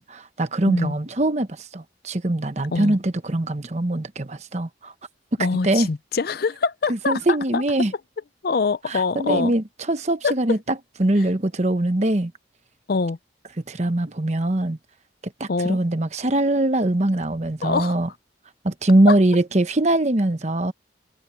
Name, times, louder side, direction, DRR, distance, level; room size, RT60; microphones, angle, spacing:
voice 1, 0.0-4.9 5.6-5.9 6.9-7.9 8.9-12.3 13.7-14.8 15.4-18.1 18.6-20.7, right 1 dB, 35° right, 1.0 m, -22 dB
voice 2, 5.4-7.6 8.4-9.5 10.2-10.3 12.9-13.2 15.5-15.8 17.6-18.0 19.1-19.2, left 4 dB, 55° left, 0.5 m, -24 dB
head